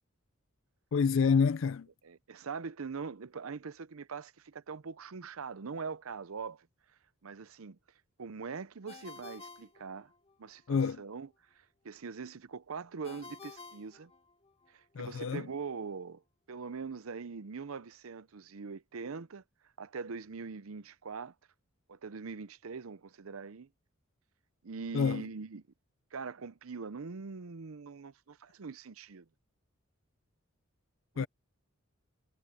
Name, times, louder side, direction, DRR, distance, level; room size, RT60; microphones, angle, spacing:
voice 1, 0.9-1.9 10.7-11.0 14.9-15.5 24.9-25.2 31.2-31.3, left 5 dB, 65° left, 0.4 m, -28 dB
voice 2, 2.0-6.7 7.2-7.8 8.2-10.1 10.4-11.3 11.6-14.1 14.7-16.2 16.5-19.4 19.8-21.3 21.9-23.7 24.6-25.6 26.1-29.3 31.1-31.3, right 5 dB, 75° right, 0.6 m, -42 dB
Ringtone, 8.9-10.5 13.0-14.7, left 4 dB, 30° left, 1.9 m, -51 dB
head